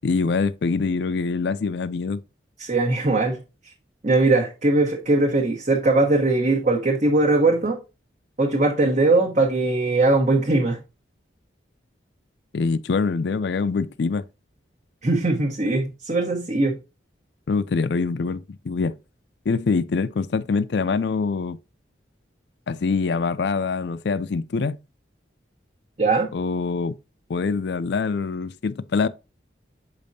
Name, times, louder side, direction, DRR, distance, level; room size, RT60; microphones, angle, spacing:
voice 1, 0.0-2.2 12.5-14.2 17.5-19.0 19.5-21.6 22.7-24.8 26.3-26.9 27.3-29.1, left 4 dB, 65° left, 0.4 m, -24 dB
voice 2, 2.6-3.4 4.0-7.8 8.4-10.8 15.0-16.8 26.0-26.3, right 2 dB, 40° right, 1.1 m, -20 dB
7.3 x 5.2 x 2.7 m
head